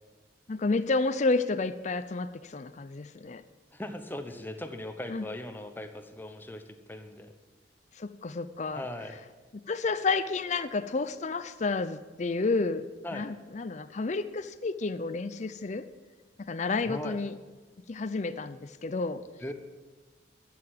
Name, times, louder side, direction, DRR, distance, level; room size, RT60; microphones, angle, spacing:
voice 1, 0.5-3.4 5.1-5.2 8.0-8.8 9.7-12.9 13.1-15.8 16.5-17.3 17.9-19.2, left 3 dB, 40° left, 11 dB, 0.5 m, -30 dB
voice 2, 3.7-6.6 6.9-7.3 8.7-9.2 13.0-13.3 16.9-17.2 19.4-19.5, left 1 dB, 10° left, 6 dB, 1.1 m, -39 dB
13.5 x 6.8 x 9.4 m, 1.3 s
head